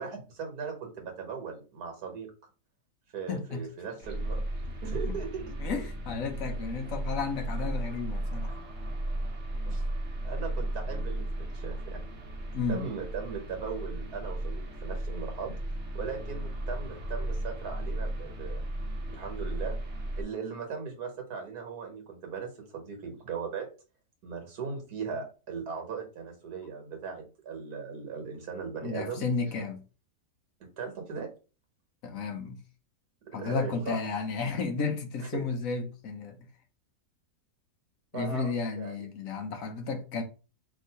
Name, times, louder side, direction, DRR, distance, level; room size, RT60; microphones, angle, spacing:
voice 1, 0.0-2.3 3.1-4.4 4.8-5.5 9.7-9.8 10.2-12.0 12.7-15.5 15.9-18.6 19.1-19.8 20.2-23.7 24.2-29.2 30.8-31.3 33.4-34.0 35.2-35.4 38.1-39.1, right 5 dB, 75° right, 1.8 m, -38 dB
voice 2, 3.3-3.6 5.0-5.1 5.6-8.6 12.5-12.8 28.8-29.8 32.0-32.6 33.3-36.4 38.1-40.2, left 4 dB, 65° left, 1.1 m, -33 dB
sound 1, 4.0-20.2, right 1 dB, 50° right, 1.2 m, -35 dB
3.6 x 2.6 x 4.6 m
omnidirectional pair, 1.7 m